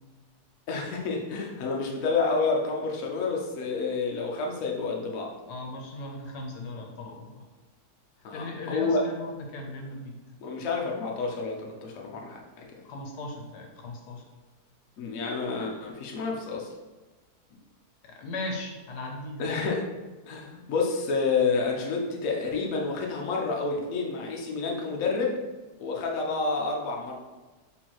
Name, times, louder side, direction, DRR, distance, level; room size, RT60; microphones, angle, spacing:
voice 1, 0.7-5.3 8.2-9.1 10.4-12.7 15.0-16.7 19.4-19.9 20.3-25.4 25.8-27.1, left 4 dB, 65° left, -1 dB, 1.0 m, -29 dB
voice 2, 5.5-7.5 8.3-10.2 12.8-14.2 18.0-19.5 20.5-20.7, left 2 dB, 80° left, 1 dB, 1.3 m, -38 dB
4.4 x 3.8 x 3.0 m, 1.2 s
omnidirectional pair, 1.7 m